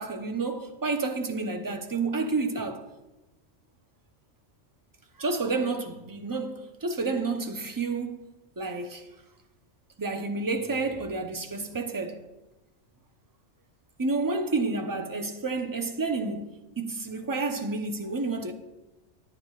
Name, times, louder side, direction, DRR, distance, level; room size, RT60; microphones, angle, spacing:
voice 1, 0.0-2.8 5.2-8.3 8.6-9.1 10.0-12.2 14.0-16.5 16.8-18.5, right 3 dB, 20° right, 0.7 m, -30 dB
19.5 x 9.5 x 2.4 m
omnidirectional pair, 1.3 m